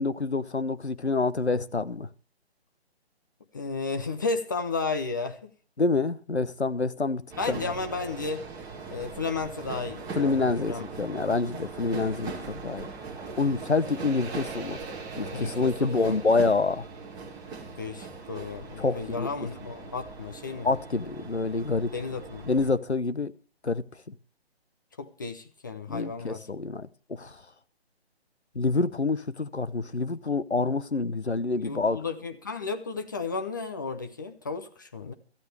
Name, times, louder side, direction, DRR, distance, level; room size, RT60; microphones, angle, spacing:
voice 1, 0.0-2.1 5.8-7.6 10.1-12.9 13.4-14.8 15.2-16.9 18.8-19.3 20.6-21.9 22.5-23.3 23.6-24.1 25.9-27.4 28.5-32.0, left 3 dB, 85° left, 1.0 m, -27 dB
voice 2, 3.5-5.5 7.4-8.4 8.9-10.8 15.3-16.2 17.8-20.7 21.9-22.5 25.0-26.4 31.6-35.1, left 4 dB, 20° left, 0.6 m, -33 dB
sound 1, 7.3-22.7, right 4 dB, 10° right, 1.9 m, -40 dB
17.5 x 13.5 x 3.4 m
figure-of-eight pair, 140°, 32 cm